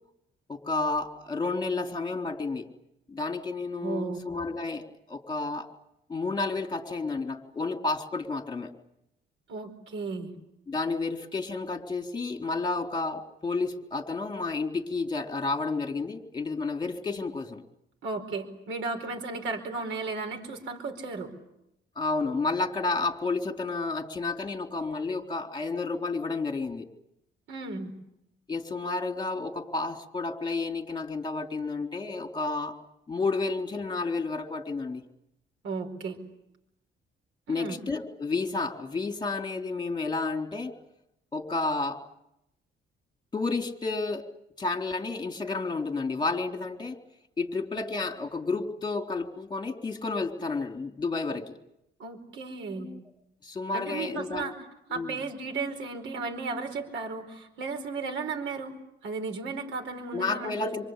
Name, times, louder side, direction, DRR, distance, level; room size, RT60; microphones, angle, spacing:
voice 1, 0.5-2.7 3.1-5.7 6.1-8.7 10.7-17.6 22.0-26.9 28.5-32.8 33.1-35.0 37.5-40.7 41.3-42.0 43.3-44.3 44.6-47.0 47.4-51.6 52.8-53.0 53.4-54.5 54.9-55.2 60.1-60.9, left 3 dB, 20° left, 4 dB, 4.0 m, -31 dB
voice 2, 3.8-4.2 9.5-10.4 18.0-21.3 27.5-27.9 35.6-36.2 37.5-37.8 52.0-52.9 53.7-54.5 54.9-58.7 59.0-60.9, right 4 dB, 80° right, 5 dB, 4.7 m, -34 dB
26.5 x 26.0 x 8.4 m, 0.82 s
cardioid pair, 90°, 20 cm